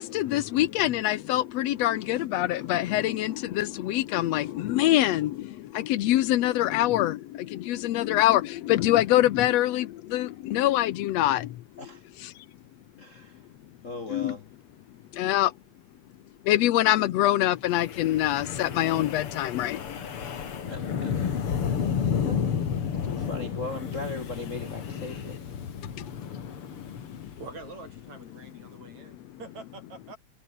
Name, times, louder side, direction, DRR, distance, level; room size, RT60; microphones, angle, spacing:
voice 1, 0.0-11.6 12.2-12.3 14.1-14.4 15.1-15.5 16.5-20.0 20.5-20.6 26.0-26.1 27.1-27.2, left 14 dB, 70° left, 1.9 m, -25 dB
voice 2, 13.0-13.4 13.8-14.4 20.7-21.5 22.2-25.4, left 3 dB, 35° left, 1.4 m, -39 dB
Wind, 17.7-28.0, left 7 dB, 50° left, 2.9 m, -32 dB
voice 3, 27.4-30.2, right 4 dB, 70° right, 7.1 m, -45 dB
omnidirectional pair, 3.4 m